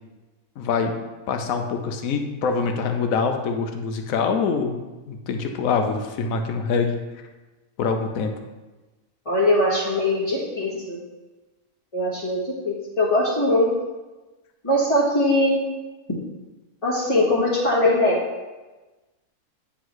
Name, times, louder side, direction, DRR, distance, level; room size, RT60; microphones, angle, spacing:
voice 1, 0.6-0.9 1.3-7.0 7.8-8.3, left 5 dB, 75° left, 5 dB, 1.1 m, -24 dB
voice 2, 9.2-11.0 11.9-13.7 14.6-15.6 16.8-18.2, left 1 dB, 25° left, -10 dB, 1.4 m, -21 dB
9.6 x 3.7 x 3.1 m, 1.2 s
omnidirectional pair, 1.5 m